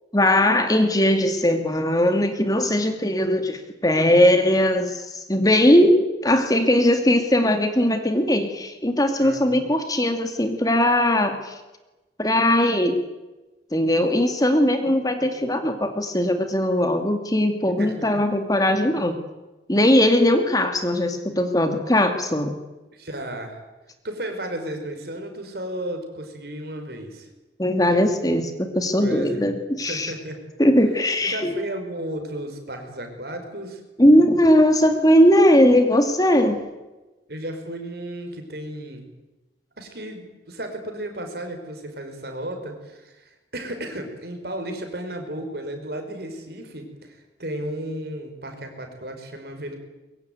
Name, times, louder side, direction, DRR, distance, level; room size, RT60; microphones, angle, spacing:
voice 1, 0.1-11.6 12.2-13.0 13.7-19.2 19.7-22.5 27.6-30.1 30.6-31.5 34.0-36.6, left 1 dB, 20° left, 6 dB, 2.3 m, -19 dB
voice 2, 9.2-9.7 17.8-18.1 22.9-23.6 24.0-27.3 29.0-29.5 29.9-30.4 31.2-33.8 37.3-39.1 39.8-49.8, right 1 dB, 60° right, 5 dB, 5.6 m, -34 dB
23.5 x 22.5 x 9.4 m, 1.1 s
head